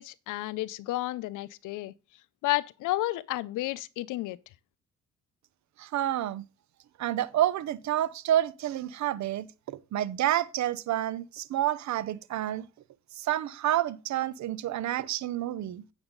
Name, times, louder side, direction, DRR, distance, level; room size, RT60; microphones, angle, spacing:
voice 1, 0.0-1.9 2.4-4.4, left 17 dB, 85° left, 0.6 m, -31 dB
voice 2, 5.8-6.4 7.0-12.7 13.1-15.8, right 12 dB, 70° right, 0.7 m, -29 dB
8.8 x 7.0 x 3.9 m
cardioid pair, 90°, 30 cm